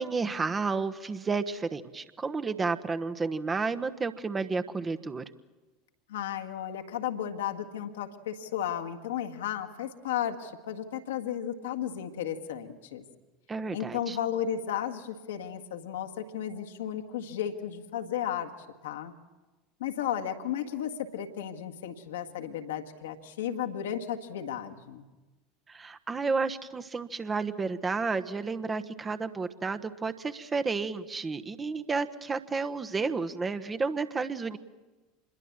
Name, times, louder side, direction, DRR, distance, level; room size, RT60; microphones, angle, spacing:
voice 1, 0.0-5.2 13.5-14.2 25.7-34.6, right 4 dB, 20° right, 11 dB, 1.2 m, -31 dB
voice 2, 6.1-13.0 13.7-18.5 18.8-19.1 19.8-25.0, left 9 dB, 65° left, 6 dB, 1.7 m, -34 dB
27.0 x 21.5 x 7.3 m, 1.2 s
figure-of-eight pair, 75°, 0 cm